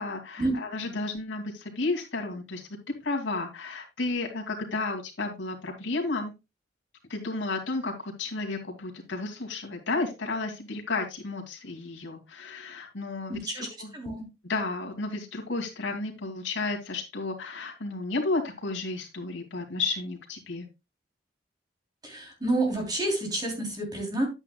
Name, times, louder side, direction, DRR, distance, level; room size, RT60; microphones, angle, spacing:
voice 1, 0.0-2.7 3.0-6.3 7.1-14.0 14.4-20.7, left 3 dB, 90° left, 1 dB, 2.5 m, -32 dB
voice 2, 13.3-13.7 13.9-14.3 22.0-24.3, right 2 dB, 20° right, 1 dB, 3.2 m, -29 dB
11.0 x 8.9 x 2.3 m, 0.25 s
head